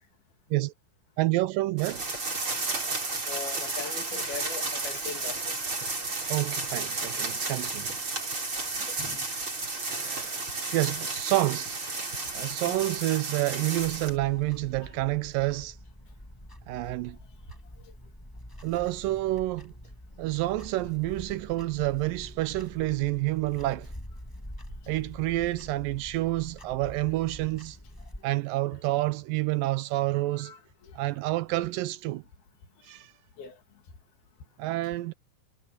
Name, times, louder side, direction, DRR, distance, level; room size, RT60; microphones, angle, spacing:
voice 1, 1.2-2.0 6.3-7.9 10.0-10.4 10.7-11.8 12.3-15.8 16.7-17.2 18.6-19.7 20.2-23.9 24.9-27.8 28.2-30.5 31.0-32.2 32.9-33.1 34.6-35.1, right 18 dB, 80° right, 2.1 m, -28 dB
sound 1, 1.8-14.2, right 3 dB, 35° right, 6.4 m, -32 dB
voice 2, 3.3-5.5 9.0-9.2 12.7-12.8 30.4-30.6 30.9-31.0 33.4-33.5, left 6 dB, 85° left, 4.9 m, -40 dB
Clock, 13.8-28.2, equal, 5° left, 5.8 m, -46 dB
omnidirectional pair, 4.2 m